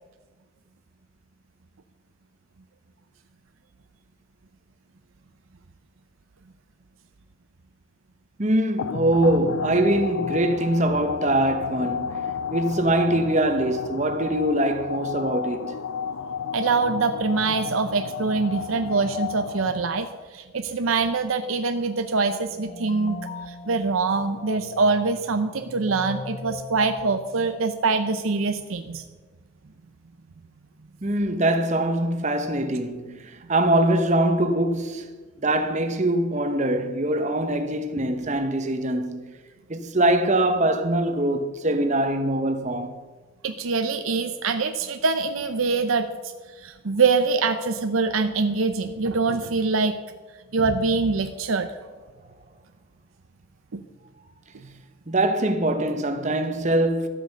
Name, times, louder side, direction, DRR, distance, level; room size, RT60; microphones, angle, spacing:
voice 1, 8.4-15.8 31.0-35.1 35.4-39.4 39.7-43.0 55.1-57.1, right 1 dB, 35° right, 1.0 m, -23 dB
sound 1, 8.8-20.1, left 6 dB, 85° left, 0.4 m, -32 dB
voice 2, 16.5-23.2 23.5-29.0 43.4-46.3 46.6-50.0 50.5-51.7 53.7-53.8, right 4 dB, 85° right, 0.7 m, -24 dB
sound 2, 22.4-27.9, left 2 dB, 30° left, 0.9 m, -40 dB
12.5 x 8.4 x 6.7 m
head